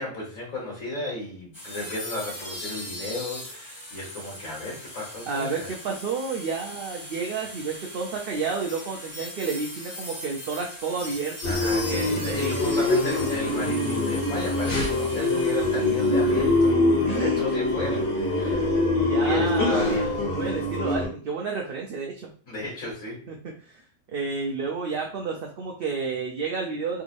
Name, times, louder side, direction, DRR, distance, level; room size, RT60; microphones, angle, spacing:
voice 1, 0.0-5.7 11.4-16.8 17.1-18.7 19.2-20.4 22.5-23.3, left 2 dB, 75° left, -5 dB, 1.8 m, -34 dB
sound 1, 1.5-16.7, left 1 dB, 20° left, 1.3 m, -39 dB
voice 2, 5.3-12.2 17.0-17.4 18.9-22.3 23.3-23.4 23.6-23.8 24.1-27.0, right 4 dB, 55° right, 1 dB, 0.7 m, -31 dB
sound 2, 11.4-21.1, left 2 dB, 55° left, 1.8 m, -24 dB
3.5 x 3.1 x 2.5 m, 0.41 s
omnidirectional pair, 1.4 m